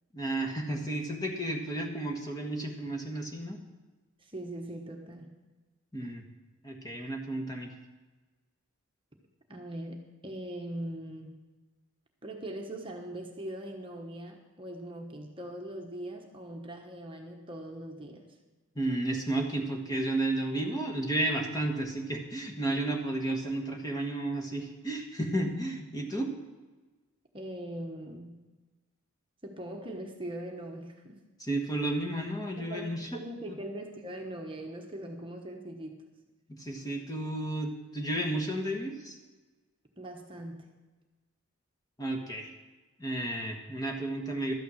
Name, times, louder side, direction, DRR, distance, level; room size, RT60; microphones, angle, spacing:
voice 1, 0.1-3.6 5.9-6.2 6.6-7.7 18.7-26.3 31.4-33.2 33.5-33.6 36.5-39.2 42.0-42.5 43.0-44.5, right 1 dB, 15° left, 1 dB, 1.4 m, -32 dB
voice 2, 4.2-5.3 9.5-11.4 12.2-18.4 27.3-28.3 29.4-31.2 32.6-36.0 40.0-40.7, right 1 dB, 25° right, 1 dB, 1.1 m, -41 dB
12.5 x 9.2 x 6.3 m, 1.2 s
head